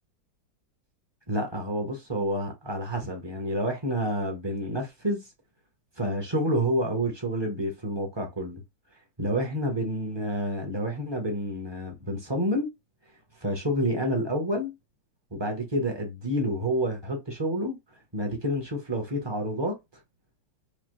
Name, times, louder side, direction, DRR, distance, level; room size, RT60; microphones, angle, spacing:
voice 1, 1.3-5.2 6.0-8.6 9.2-12.7 13.4-14.7 15.3-17.8 18.1-19.7, equal, 35° right, 0.4 m, -29 dB
4.9 x 2.5 x 3.1 m
omnidirectional pair, 2.2 m